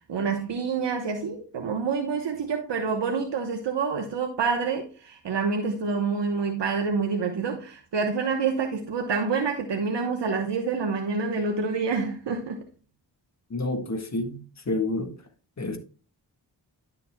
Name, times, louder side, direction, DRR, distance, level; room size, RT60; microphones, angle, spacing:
voice 1, 0.1-12.6, right 5 dB, 75° right, 1.1 m, -27 dB
voice 2, 13.5-15.1 15.6-15.8, left 2 dB, 40° left, 1.7 m, -29 dB
11.0 x 6.8 x 2.2 m
cardioid pair, 70°, 43 cm